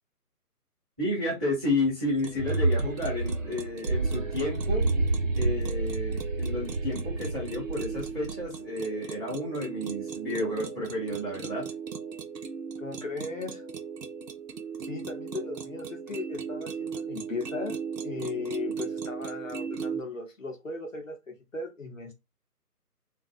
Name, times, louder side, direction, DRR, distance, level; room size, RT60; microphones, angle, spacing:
voice 1, 1.0-4.9 5.3-11.6, left 1 dB, 10° right, 0.9 m, -31 dB
sound 1, 2.2-8.6, right 2 dB, 55° right, 0.8 m, -29 dB
sound 2, 2.2-20.0, right 6 dB, 85° right, 0.6 m, -38 dB
voice 2, 12.8-13.6 14.9-17.8 18.0-22.1, left 3 dB, 55° left, 0.8 m, -37 dB
2.5 x 2.3 x 2.4 m
figure-of-eight pair, 160°, 48 cm